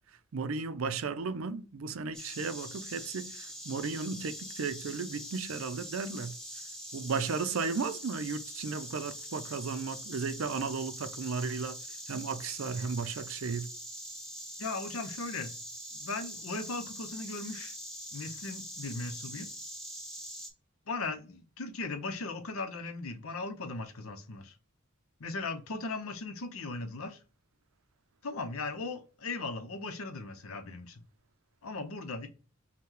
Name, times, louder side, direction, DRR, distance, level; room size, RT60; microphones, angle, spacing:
voice 1, 0.3-6.3 6.9-11.8 12.1-13.7, right 5 dB, 75° right, 0.5 m, -35 dB
Insect, 2.1-20.5, equal, 5° left, 0.9 m, -43 dB
voice 2, 14.6-15.5 15.9-17.7 18.1-19.5 20.9-24.5 25.2-27.2 28.2-31.0 31.6-32.3, left 3 dB, 90° left, 0.7 m, -38 dB
5.7 x 2.2 x 3.2 m
head